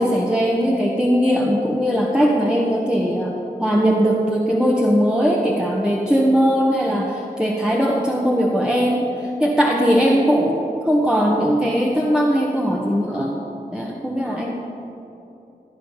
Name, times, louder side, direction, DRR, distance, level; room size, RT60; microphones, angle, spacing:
voice 1, 0.0-13.4 13.7-14.7, equal, 5° right, -2 dB, 1.5 m, -19 dB
16.5 x 9.8 x 5.8 m, 2.9 s
cardioid pair, 45°, 16 cm